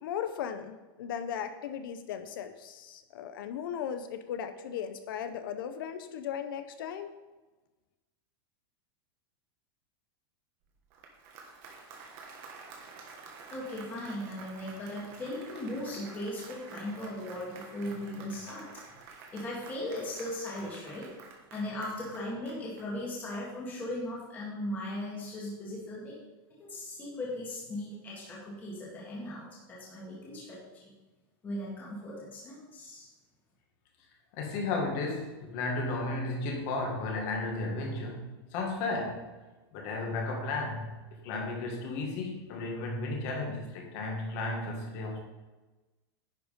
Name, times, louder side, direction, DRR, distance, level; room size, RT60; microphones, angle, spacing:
voice 1, 0.0-7.1, left 8 dB, 60° left, 10 dB, 0.7 m, -37 dB
Applause, 10.8-23.3, right 4 dB, 35° right, 1.4 m, -50 dB
voice 2, 13.5-18.7 19.0-21.1 21.5-26.1 26.6-30.9 31.4-33.1, left 1 dB, 15° left, -6 dB, 1.8 m, -38 dB
voice 3, 34.3-39.3 39.7-40.9 41.2-45.2, left 2 dB, 40° left, 0 dB, 1.9 m, -34 dB
10.5 x 4.8 x 5.2 m, 1.2 s
supercardioid pair, 180°, 13 cm